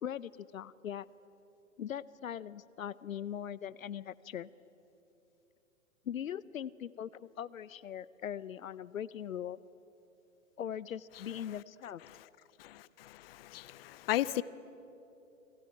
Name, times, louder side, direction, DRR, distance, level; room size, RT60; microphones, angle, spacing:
voice 1, 0.0-1.1 1.8-4.5 6.1-9.6 10.6-12.0, left 9 dB, 75° left, 0.8 m, -40 dB
voice 2, 12.6-14.4, left 14 dB, 45° left, 0.8 m, -36 dB
30.0 x 22.5 x 8.7 m
hypercardioid pair, 125°, 41 cm